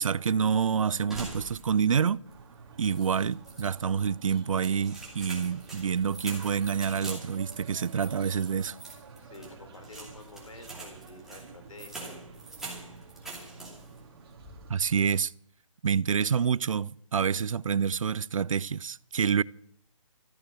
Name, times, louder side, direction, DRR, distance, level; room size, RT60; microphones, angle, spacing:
voice 1, 0.0-2.2 2.8-8.8 14.7-15.3 15.8-19.4, right 7 dB, 80° right, 0.6 m, -27 dB
sound 1, 1.1-2.0 2.3-2.4 2.8-3.7 4.3-14.0 14.4-14.9, right 2 dB, ahead, 2.7 m, -44 dB
sound 2, 2.2-15.1, right 5 dB, 45° right, 2.2 m, -50 dB
voice 2, 9.2-12.2, left 3 dB, 80° left, 4.0 m, -49 dB
14.0 x 10.5 x 7.8 m
hypercardioid pair, 155°, 17 cm